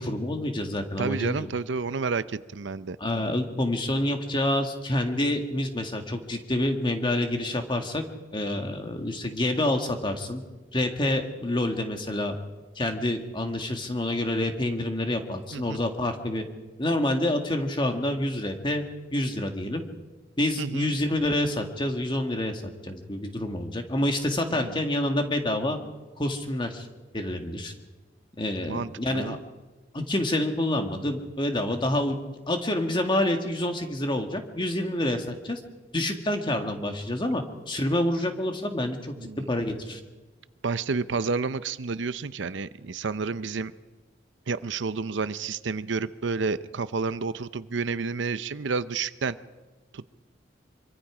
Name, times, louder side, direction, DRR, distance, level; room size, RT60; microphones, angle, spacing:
voice 1, 0.0-1.4 3.0-8.0 8.3-10.4 10.7-12.3 12.8-16.5 16.8-18.8 19.1-19.8 20.4-25.8 26.2-26.9 27.1-27.7 28.4-29.4 29.9-32.2 32.5-35.6 35.9-39.1 39.5-40.0, left 1 dB, 25° left, 4 dB, 1.9 m, -27 dB
voice 2, 1.0-3.0 15.5-15.8 20.6-21.0 24.5-24.8 28.7-29.4 39.2-39.5 40.6-43.7 44.5-49.4 49.9-50.1, right 4 dB, 70° right, 14 dB, 0.6 m, -30 dB
24.5 x 24.5 x 5.0 m, 1.2 s
head